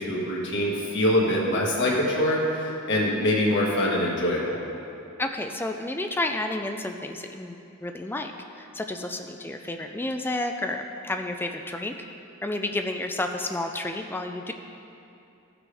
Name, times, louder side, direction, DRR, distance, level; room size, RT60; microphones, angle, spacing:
voice 1, 0.0-4.6, left 1 dB, 55° left, -3 dB, 1.7 m, -24 dB
voice 2, 5.2-12.1 12.4-14.5, left 2 dB, 10° left, 5 dB, 0.3 m, -31 dB
16.0 x 6.1 x 3.4 m, 2.7 s
head